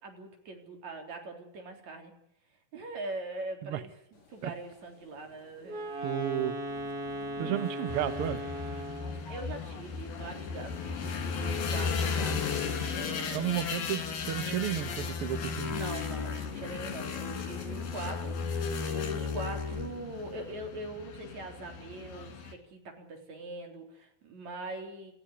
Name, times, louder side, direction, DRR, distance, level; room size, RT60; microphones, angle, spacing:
voice 1, 0.0-2.1 2.7-3.9 4.3-6.1 7.3-7.6 9.3-13.7 15.7-25.1, right 2 dB, 50° right, 4 dB, 4.9 m, -42 dB
sound 1, 4.1-19.9, left 5 dB, 45° left, 5.8 m, -56 dB
Wind instrument woodwind instrument, 5.6-9.3, equal, 30° right, 1.9 m, -37 dB
voice 2, 6.0-6.6 7.4-8.4 13.3-15.8, right 11 dB, 80° right, 12 dB, 1.3 m, -32 dB
sound 2, 7.9-22.5, left 5 dB, 80° left, 4.9 m, -35 dB
28.5 x 15.0 x 9.8 m, 0.74 s
omnidirectional pair, 4.2 m